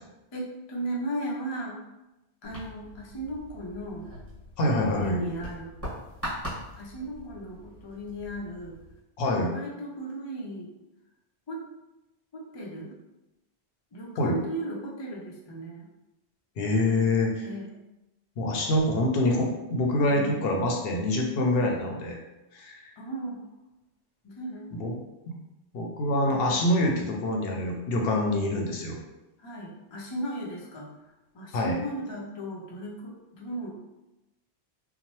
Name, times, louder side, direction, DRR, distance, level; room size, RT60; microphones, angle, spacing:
voice 1, 0.3-1.8 2.4-4.1 4.6-5.7 6.8-8.8 9.5-10.7 11.5-11.6 12.3-13.0 13.9-15.9 16.8-17.1 17.4-17.8 20.1-20.4 23.0-23.5 24.2-24.7 29.4-30.9 31.3-33.8, right 1 dB, 45° left, -2 dB, 0.3 m, -36 dB
sound 1, 2.4-9.0, equal, 15° right, 1.5 m, -41 dB
voice 2, 4.6-5.2 9.2-9.5 14.2-14.4 16.6-17.5 18.4-22.2 22.5-22.9 24.8-24.9 25.3-25.4 25.7-29.0 31.5-31.8, left 1 dB, 70° left, 1 dB, 0.7 m, -25 dB
2.9 x 2.0 x 2.9 m, 0.96 s
omnidirectional pair, 1.1 m